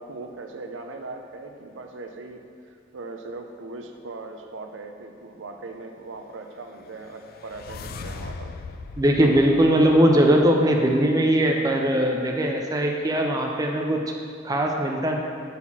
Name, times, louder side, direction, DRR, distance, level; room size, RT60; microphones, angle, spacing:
voice 1, 0.0-8.5, right 3 dB, 70° right, 5 dB, 0.5 m, -39 dB
sound 1, 6.7-10.8, left 4 dB, 50° left, 0.3 m, -40 dB
voice 2, 9.0-14.0 14.4-15.2, right 1 dB, 20° right, 1 dB, 0.5 m, -20 dB
5.8 x 4.1 x 5.9 m, 2.3 s
head